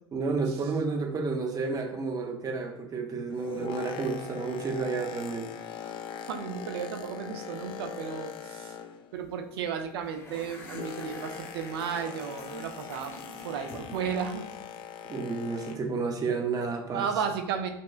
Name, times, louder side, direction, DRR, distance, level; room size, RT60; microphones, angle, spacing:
voice 1, 0.1-5.5 15.0-17.1, right 4 dB, 30° right, 3 dB, 0.6 m, -31 dB
Boat Water vehicle, 3.1-9.2 9.5-16.0 16.6-16.7, left 8 dB, 40° left, 0.4 m, -42 dB
voice 2, 6.3-8.7 9.1-13.1 13.4-14.5 16.9-17.7, right 7 dB, 70° right, 6 dB, 0.4 m, -33 dB
sound 1, 9.2-9.4 9.6-14.7, left 2 dB, 20° left, 0.9 m, -48 dB
4.1 x 2.1 x 2.4 m, 0.79 s
hypercardioid pair, 75°, 13 cm